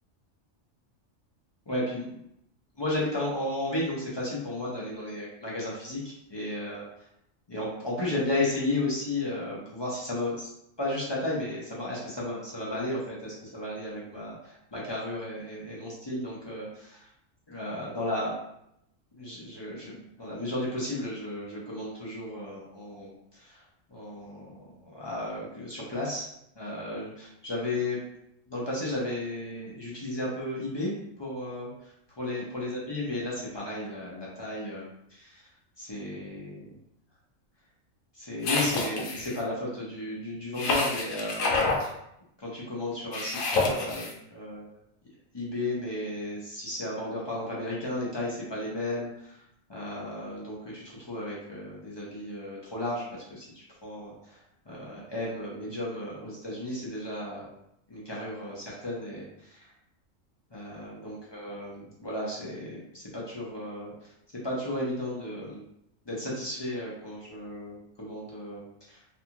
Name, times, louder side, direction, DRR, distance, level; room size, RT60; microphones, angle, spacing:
voice 1, 1.7-2.1 2.8-6.8 7.5-10.5 10.8-17.1 17.5-18.4 19.2-26.3 26.5-28.0 28.5-30.9 31.2-35.4 35.8-36.7 38.1-41.9 42.4-44.7 45.3-49.4 49.7-57.5 57.9-59.7 60.5-65.6 66.0-69.0, left 1 dB, 35° left, -6 dB, 0.4 m, -34 dB
sound 1, 38.4-39.4 40.6-41.8 43.1-44.1, left 3 dB, 85° left, 1.0 m, -28 dB
2.6 x 2.3 x 2.8 m, 0.78 s
omnidirectional pair, 1.4 m